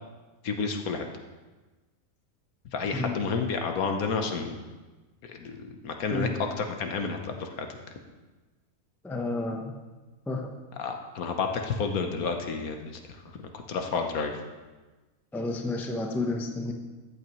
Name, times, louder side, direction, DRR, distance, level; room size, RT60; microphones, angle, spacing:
voice 1, 0.4-1.1 2.7-4.6 5.2-6.3 6.6-7.7 10.8-14.4, left 5 dB, 75° left, 5 dB, 1.4 m, -31 dB
voice 2, 2.9-3.2 6.1-6.4 9.0-9.7 10.3-10.5 15.3-16.7, left 2 dB, ahead, 2 dB, 0.5 m, -31 dB
14.0 x 8.2 x 3.1 m, 1.2 s
omnidirectional pair, 1.5 m